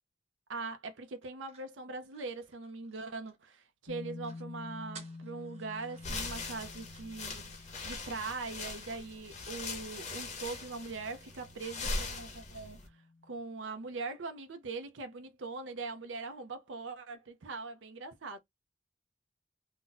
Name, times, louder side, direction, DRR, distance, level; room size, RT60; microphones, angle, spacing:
voice 1, 0.5-12.8 13.3-18.4, right 3 dB, 90° right, 0.6 m, -41 dB
sound 1, 1.2-3.6 3.9-4.0 4.2-4.5 4.9-6.3, right 5 dB, 35° right, 0.9 m, -56 dB
sound 2, 3.9-13.3, left 3 dB, 90° left, 0.9 m, -51 dB
sound 3, 6.0-12.9, left 3 dB, 40° left, 0.8 m, -41 dB
2.5 x 2.1 x 3.9 m
head